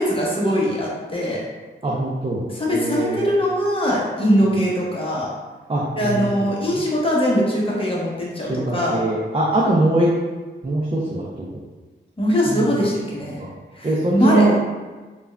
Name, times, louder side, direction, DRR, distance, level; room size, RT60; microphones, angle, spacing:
voice 1, 0.0-1.4 2.5-5.3 6.0-9.0 12.2-13.4 13.7-14.5, equal, 25° left, -5 dB, 0.9 m, -21 dB
voice 2, 1.8-3.3 5.7-6.2 8.5-10.1 10.6-11.3 12.5-12.7 13.4-13.5 13.8-14.5, right 2 dB, 30° right, -4 dB, 0.5 m, -21 dB
3.3 x 2.3 x 2.2 m, 1.3 s
cardioid pair, 40°, 21 cm